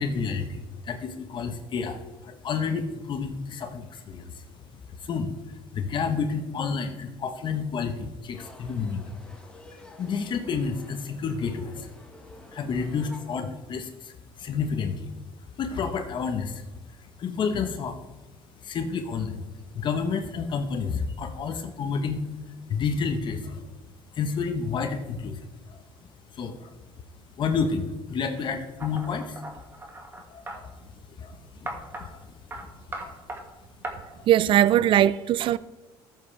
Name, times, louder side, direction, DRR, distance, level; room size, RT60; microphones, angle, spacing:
voice 1, 0.0-4.4 5.0-9.1 10.0-11.9 12.5-15.1 15.6-16.6 17.0-18.0 18.6-19.4 19.7-22.2 22.7-23.6 24.1-25.4 25.7-25.8 26.3-26.7 27.4-29.4 30.3-30.9 31.2-32.7 32.9-33.2 34.1-34.3, left 5 dB, 45° left, 1.1 m, -30 dB
sound 1, 8.3-13.4, left 2 dB, 5° left, 1.7 m, -50 dB
sound 2, 28.8-30.6 31.7-32.1 32.5-32.6 32.9-33.4 33.8-33.9, right 1 dB, 20° right, 2.1 m, -37 dB
voice 2, 34.3-35.6, right 11 dB, 50° right, 0.4 m, -19 dB
13.5 x 7.6 x 3.4 m
cardioid pair, 105°, 11 cm